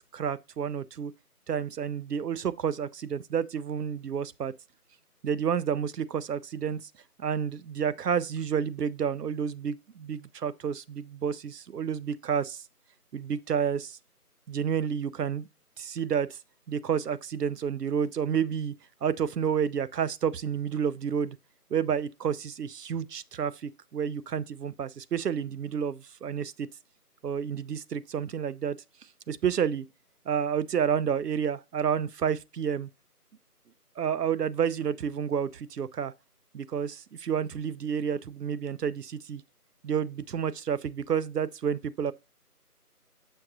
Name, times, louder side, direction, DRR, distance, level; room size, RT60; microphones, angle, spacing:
voice 1, 0.1-1.1 1.5-4.5 5.2-6.8 7.2-12.6 13.1-14.0 14.5-15.5 15.8-16.4 16.7-18.7 19.0-21.4 21.7-26.7 27.2-28.8 29.3-29.8 30.3-32.9 34.0-36.1 36.5-39.4 39.8-42.1, right 7 dB, 90° right, 0.6 m, -30 dB
6.4 x 6.0 x 2.6 m
figure-of-eight pair, 175°, 46 cm